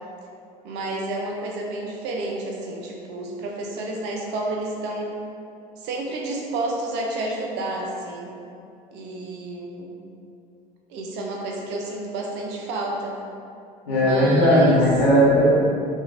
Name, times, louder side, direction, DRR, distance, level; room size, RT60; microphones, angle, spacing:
voice 1, 0.6-5.2 5.8-8.4 8.9-9.9 10.9-13.2 13.9-14.8, right 2 dB, 60° right, -1 dB, 0.5 m, -30 dB
voice 2, 13.9-15.4, equal, 85° left, -12 dB, 0.6 m, -17 dB
2.9 x 2.3 x 2.4 m, 2.6 s
hypercardioid pair, 60°, 20 cm